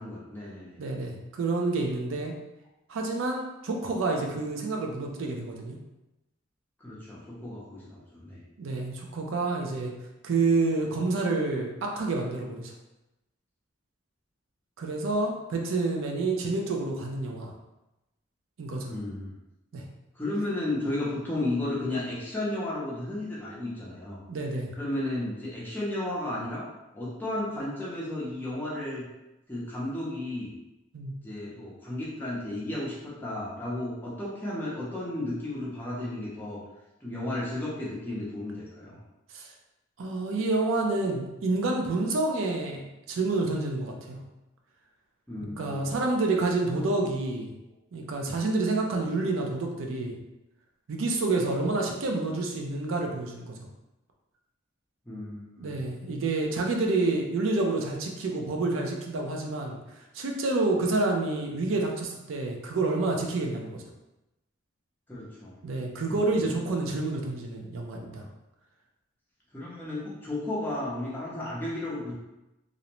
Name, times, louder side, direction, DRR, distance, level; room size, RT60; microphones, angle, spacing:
voice 1, 0.0-0.8 6.8-8.4 18.9-19.3 20.1-24.2 24.8-26.7 26.9-29.0 29.5-30.5 31.2-36.6 37.0-39.0 45.3-45.9 55.1-55.8 65.1-65.5 66.0-66.3 69.5-72.1, left 1 dB, 10° left, -7 dB, 0.5 m, -33 dB
voice 2, 0.8-2.3 2.9-5.8 8.6-9.9 10.2-12.7 14.8-17.5 18.6-18.9 19.7-19.8 24.3-24.7 30.9-31.1 39.3-39.4 40.0-44.2 45.6-47.5 47.9-50.1 50.9-53.5 55.6-59.8 60.1-63.8 65.6-68.2, right 3 dB, 85° right, 1 dB, 0.4 m, -28 dB
2.5 x 2.0 x 2.9 m, 0.96 s
head